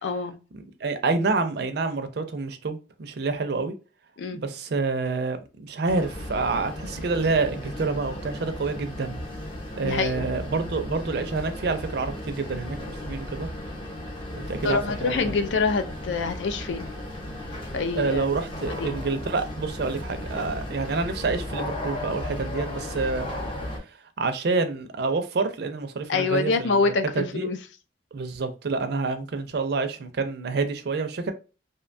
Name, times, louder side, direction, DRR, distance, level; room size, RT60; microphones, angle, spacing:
voice 1, 0.0-0.4 4.2-4.4 9.8-10.3 14.6-16.8 17.7-18.3 18.7-19.0 26.1-27.6, left 4 dB, 85° left, 0.4 m, -26 dB
voice 2, 0.5-3.7 4.3-9.2 9.8-13.5 14.4-15.3 17.9-23.3 24.2-27.5 28.1-31.3, right 3 dB, 60° right, 0.4 m, -28 dB
sound 1, 5.9-23.8, left 1 dB, 30° left, 0.6 m, -35 dB
2.7 x 2.2 x 2.5 m
head